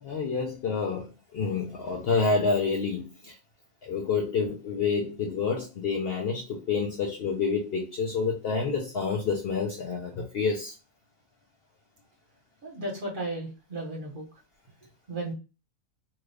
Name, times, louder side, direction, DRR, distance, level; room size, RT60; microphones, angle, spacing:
voice 1, 0.0-3.3 3.8-10.7, left 4 dB, 60° left, 0.7 m, -28 dB
voice 2, 12.6-14.3 15.1-15.3, right 2 dB, 40° right, 1.2 m, -34 dB
2.9 x 2.3 x 3.3 m
omnidirectional pair, 1.4 m